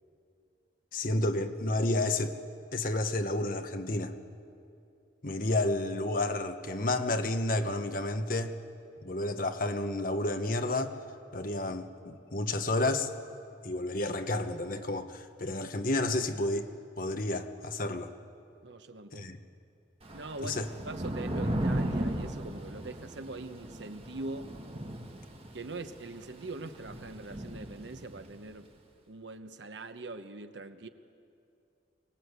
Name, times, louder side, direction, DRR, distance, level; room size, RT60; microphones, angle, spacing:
voice 1, 0.9-2.4 2.7-4.1 5.2-8.5 9.0-10.9 11.3-13.1 13.6-16.7 17.0-18.1 19.1-19.4 20.4-20.7, left 2 dB, 45° left, 7 dB, 1.1 m, -31 dB
voice 2, 18.6-19.3 20.1-24.5 25.5-28.7 29.1-30.9, right 2 dB, 75° right, 8 dB, 1.1 m, -42 dB
Thunder / Rain, 20.0-28.4, right 1 dB, 30° right, 1.5 m, -36 dB
24.5 x 19.0 x 8.2 m, 2.6 s
head